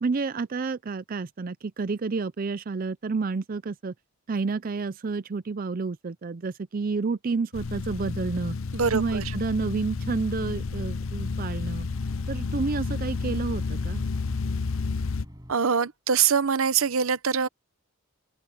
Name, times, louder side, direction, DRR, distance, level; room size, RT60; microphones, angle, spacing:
voice 1, 0.0-3.9 4.3-8.6 8.9-11.9 12.3-14.0, right 4 dB, 40° right, 0.4 m, -30 dB
sound 1, 7.5-15.2, left 4 dB, 70° left, 0.7 m, -31 dB
sound 2, 8.6-15.6, equal, 20° right, 7.7 m, -51 dB
voice 2, 8.7-9.3 15.5-17.5, right 6 dB, 75° right, 0.8 m, -24 dB
open air
head